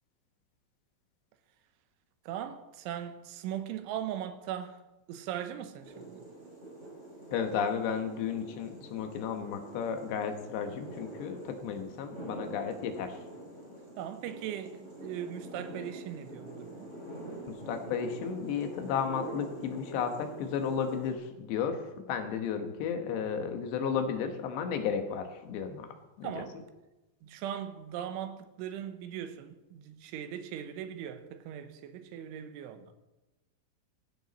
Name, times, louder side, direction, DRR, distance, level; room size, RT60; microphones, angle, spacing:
voice 1, 2.3-4.8 5.1-6.2 14.0-16.9 26.2-26.5 27.2-32.9, right 10 dB, 80° right, 3.3 m, -39 dB
sound 1, 5.8-21.1, right 1 dB, 15° right, 4.7 m, -45 dB
voice 2, 7.3-13.2 17.5-21.8 22.1-25.9 26.2-26.4, left 7 dB, 70° left, 3.1 m, -33 dB
16.0 x 15.5 x 4.2 m
omnidirectional pair, 5.7 m